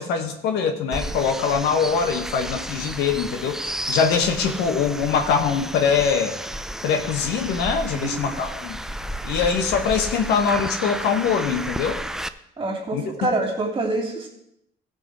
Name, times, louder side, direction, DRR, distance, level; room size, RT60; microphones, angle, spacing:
voice 1, 0.0-6.4 6.8-8.8 9.2-12.0 12.9-13.0, left 6 dB, 80° left, 5 dB, 1.4 m, -23 dB
sound 1, 0.9-12.3, right 1 dB, 5° right, 0.4 m, -32 dB
voice 2, 12.6-14.3, right 2 dB, 30° right, -1 dB, 2.9 m, -26 dB
15.5 x 5.4 x 4.8 m, 0.79 s
cardioid pair, 110°, 17 cm